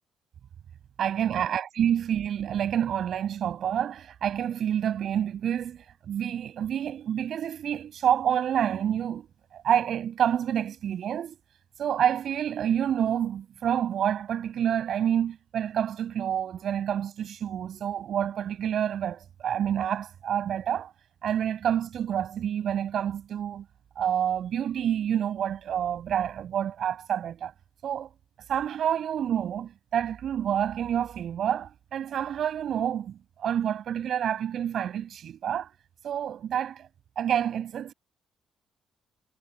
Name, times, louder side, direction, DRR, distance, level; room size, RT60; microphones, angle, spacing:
voice 1, 1.0-9.3 9.5-11.4 11.8-20.9 21.2-23.7 24.0-27.5 27.8-28.1 28.5-35.7 36.0-36.9 37.2-37.9, right 9 dB, 65° right, 7.8 m, -28 dB
cardioid pair, 90°, 0 cm